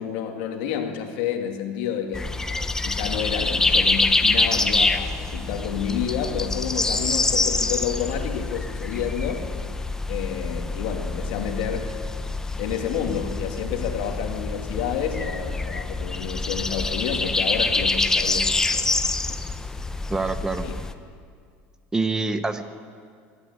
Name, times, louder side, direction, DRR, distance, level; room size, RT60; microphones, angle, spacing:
voice 1, 0.0-2.3 2.8-9.6 10.1-12.0 12.6-19.0 19.3-19.4 20.6-20.7, left 8 dB, 80° left, 3 dB, 2.3 m, -29 dB
sound 1, 2.1-20.9, left 3 dB, 10° left, 0.9 m, -26 dB
voice 2, 20.1-20.7 21.9-22.6, right 3 dB, 10° right, 9 dB, 1.1 m, -25 dB
23.0 x 12.5 x 9.7 m, 2.2 s
supercardioid pair, 130°, 5 cm